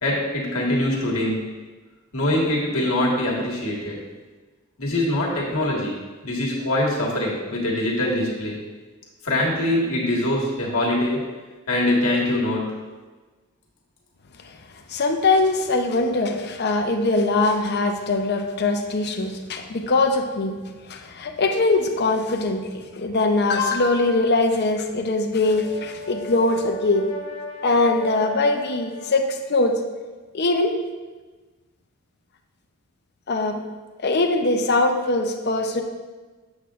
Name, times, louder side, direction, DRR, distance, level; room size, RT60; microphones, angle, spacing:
voice 1, 0.0-1.5 2.1-4.0 4.8-6.0 6.2-8.6 9.2-11.2 11.7-12.7, left 1 dB, 75° left, -3 dB, 1.6 m, -23 dB
voice 2, 14.9-20.6 20.9-27.1 27.6-29.7 30.3-30.7 33.3-33.6 34.0-35.8, left 2 dB, 50° left, 4 dB, 0.6 m, -22 dB
Brass instrument, 25.4-29.6, left 3 dB, 20° left, 1.3 m, -37 dB
8.0 x 6.9 x 2.5 m, 1.3 s
head